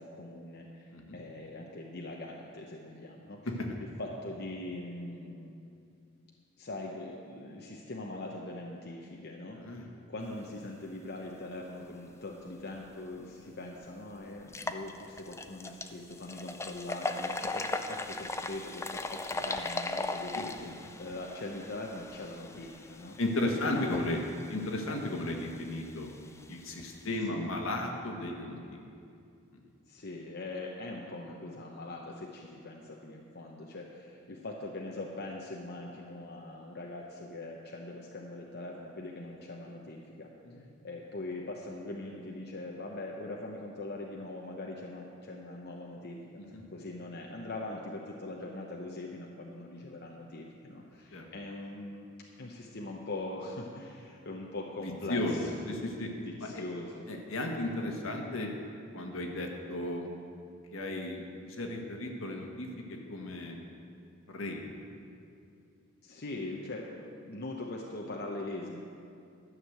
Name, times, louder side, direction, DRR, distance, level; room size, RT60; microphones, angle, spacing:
voice 1, 0.0-3.5 3.8-5.5 6.6-23.2 23.7-24.1 27.3-27.5 29.9-40.3 40.8-46.2 46.5-52.1 52.4-55.5 56.1-57.0 66.0-68.8, left 2 dB, 50° left, -1 dB, 0.8 m, -42 dB
sound 1, 13.1-13.2 13.7-13.8 14.4-27.2, left 2 dB, 15° left, 0.4 m, -39 dB
voice 2, 20.3-20.7 23.2-24.2 24.5-26.1 26.5-28.8 40.4-40.6 46.4-46.6 51.1-51.3 54.8-56.1 56.4-56.6 57.1-58.5 58.9-60.1 60.7-63.6 64.3-64.8, left 1 dB, 75° left, 1 dB, 1.5 m, -35 dB
12.5 x 6.4 x 8.0 m, 2.5 s
head